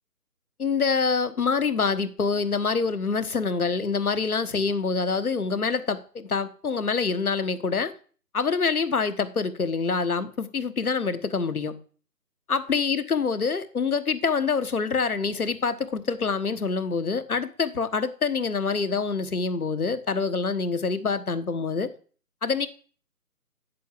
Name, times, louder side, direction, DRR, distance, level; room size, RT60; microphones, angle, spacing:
voice 1, 0.6-7.9 8.3-11.7 12.5-21.9 22.4-22.7, left 5 dB, 65° left, 11 dB, 1.4 m, -26 dB
8.5 x 7.8 x 7.5 m, 0.43 s
figure-of-eight pair, 150°, 47 cm